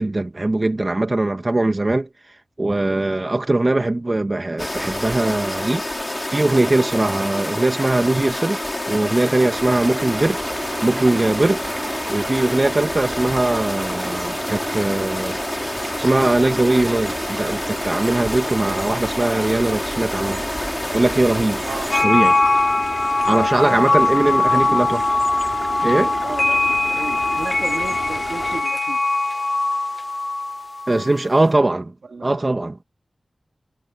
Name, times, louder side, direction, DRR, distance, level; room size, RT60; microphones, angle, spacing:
voice 1, 0.0-8.6 8.9-10.4 10.8-15.4 16.0-20.4 20.9-21.6 21.9-22.4 23.3-25.0 25.8-26.1 30.9-31.9 32.2-32.8, right 2 dB, 35° right, 1.7 m, -20 dB
sound 1, 4.6-22.0, left 1 dB, 20° left, 3.5 m, -28 dB
sound 2, 9.5-28.6, right 3 dB, 55° right, 6.9 m, -34 dB
voice 2, 21.6-22.1 23.6-24.8 26.2-29.0 32.1-32.4, right 4 dB, 85° right, 3.4 m, -34 dB
sound 3, 21.9-31.2, left 2 dB, 45° left, 0.5 m, -21 dB
wide cardioid pair, 65°, 0 cm